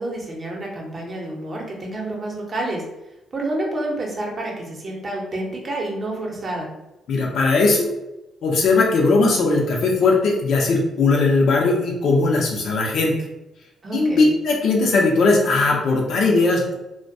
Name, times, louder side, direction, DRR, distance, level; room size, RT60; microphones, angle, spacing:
voice 1, 0.0-2.8 3.3-6.7 13.8-14.3, right 1 dB, 40° right, -1 dB, 0.7 m, -29 dB
voice 2, 7.1-7.9 8.4-13.1 13.9-16.7, left 3 dB, 70° left, -1 dB, 0.6 m, -18 dB
2.2 x 2.1 x 2.6 m, 0.94 s
cardioid pair, 90°, 0 cm